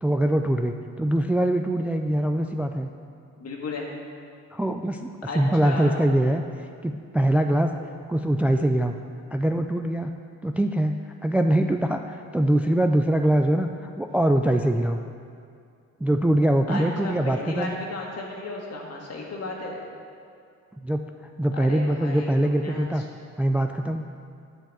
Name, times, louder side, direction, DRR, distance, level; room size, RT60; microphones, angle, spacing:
voice 1, 0.0-2.9 4.5-6.4 6.8-7.7 8.1-9.0 9.3-10.1 10.4-15.0 16.0-17.7 20.8-21.0 21.4-23.0 23.4-24.1, right 1 dB, 5° right, 6 dB, 0.3 m, -23 dB
voice 2, 3.4-3.8 5.3-6.0 16.7-19.8 21.5-23.0, left 2 dB, 55° left, -1 dB, 1.8 m, -34 dB
9.1 x 4.5 x 7.4 m, 2.3 s
cardioid pair, 90°, 30 cm